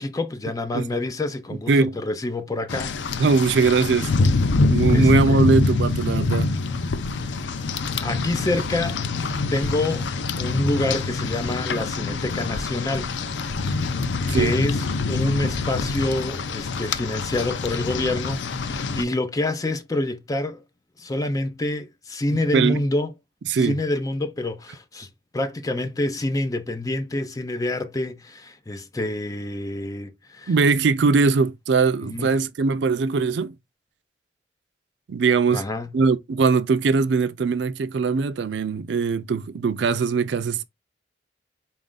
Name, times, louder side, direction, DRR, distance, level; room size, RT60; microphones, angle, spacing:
voice 1, 0.0-3.2 4.9-5.4 7.2-7.3 8.0-9.1 9.5-10.1 10.4-13.1 13.7-14.0 14.3-20.6 21.0-23.1 23.5-30.5 32.0-32.3 35.5-35.9, left 2 dB, 20° left, 0.4 m, -27 dB
Rain, 2.7-19.0, left 3 dB, 80° left, 0.5 m, -25 dB
voice 2, 3.2-4.1 4.7-6.5 14.3-14.5 22.5-22.8 23.5-23.8 30.5-33.5 35.1-35.6 35.9-40.6, right 4 dB, 75° right, 0.4 m, -21 dB
4.1 x 2.5 x 3.7 m
head